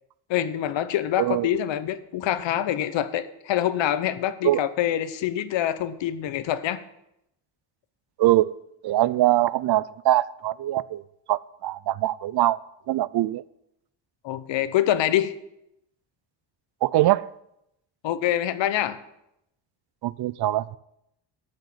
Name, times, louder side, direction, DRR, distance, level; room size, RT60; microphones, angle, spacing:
voice 1, 0.3-6.8 14.2-15.3 18.0-19.0, left 11 dB, 85° left, 1.1 m, -25 dB
voice 2, 8.2-8.6 8.8-11.0 11.3-12.6 12.9-13.4 16.8-17.3 20.0-20.8, right 15 dB, 60° right, 0.5 m, -22 dB
13.0 x 6.5 x 9.1 m
cardioid pair, 150°, 43 cm